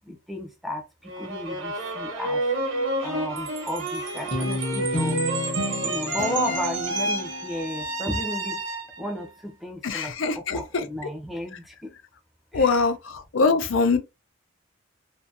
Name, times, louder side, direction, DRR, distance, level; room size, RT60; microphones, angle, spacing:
voice 1, 0.1-2.4 3.0-5.2 5.8-8.6 9.0-11.9 12.5-12.8, equal, ahead, 0.5 m, -33 dB
sound 1, 1.0-9.3, right 1 dB, 80° right, 0.9 m, -30 dB
Chime, 3.4-7.8, right 8 dB, 60° right, 0.6 m, -36 dB
Guitar, 4.3-7.6, left 1 dB, 40° left, 0.8 m, -31 dB
voice 2, 9.8-10.8 12.5-14.0, left 4 dB, 80° left, 0.5 m, -23 dB
2.7 x 2.6 x 2.4 m
head